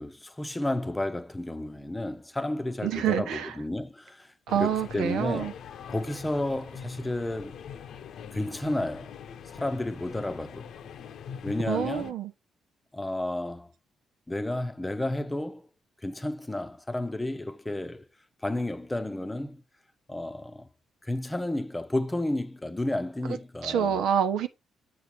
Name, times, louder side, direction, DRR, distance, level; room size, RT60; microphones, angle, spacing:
voice 1, 0.0-5.5 5.9-7.6 8.3-9.1 9.5-10.7 11.4-12.1 12.9-13.7 14.3-15.7 16.0-18.1 18.4-19.6 20.1-20.7 21.0-24.0, left 1 dB, 10° left, 0.8 m, -32 dB
voice 2, 2.8-3.6 4.5-5.5 11.7-12.3 23.6-24.5, right 8 dB, 85° right, 1.1 m, -27 dB
sound 1, 4.5-12.1, left 8 dB, 70° left, 0.9 m, -43 dB
7.9 x 3.4 x 6.2 m
cardioid pair, 90°, 0 cm